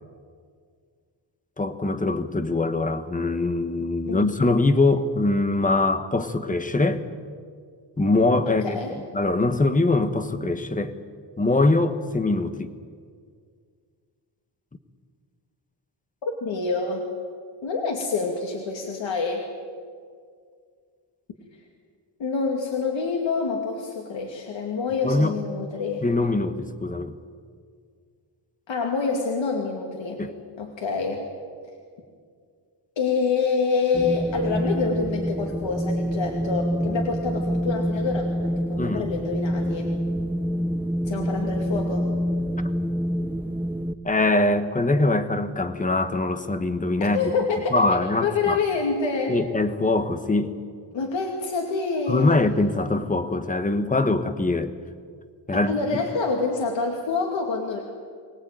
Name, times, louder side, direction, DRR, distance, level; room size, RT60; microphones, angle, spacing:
voice 1, 1.6-7.0 8.0-8.8 9.1-11.0 11.4-12.7 25.0-25.3 26.0-27.2 30.2-30.3 38.8-39.1 44.0-47.2 47.7-48.6 49.3-50.5 52.1-54.7 55.5-56.0, left 2 dB, 15° left, 9 dB, 1.2 m, -23 dB
voice 2, 8.5-9.0 16.4-17.0 17.6-19.5 22.2-26.0 28.7-30.2 30.6-31.3 33.0-39.9 41.0-42.1 47.0-49.4 50.9-52.4 55.5-57.8, left 4 dB, 75° left, 1 dB, 2.5 m, -27 dB
Wind, 33.9-43.9, equal, 5° right, 0.7 m, -27 dB
24.5 x 18.0 x 9.1 m, 2.1 s
wide cardioid pair, 155°, 45 cm